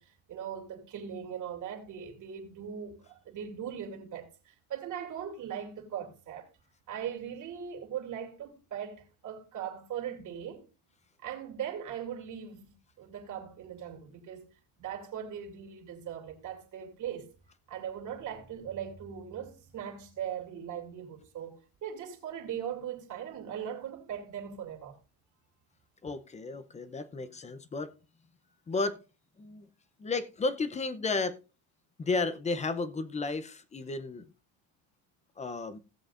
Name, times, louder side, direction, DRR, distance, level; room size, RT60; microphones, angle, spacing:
voice 1, 0.0-6.5 6.9-10.6 11.2-17.3 17.7-25.0, right 9 dB, 40° right, 2.7 m, -40 dB
voice 2, 26.0-27.9 28.7-29.0 29.4-29.7 30.0-31.4 32.0-34.2 35.4-35.8, left 3 dB, 15° left, 0.6 m, -33 dB
17.0 x 7.6 x 2.5 m
cardioid pair, 150°, 46 cm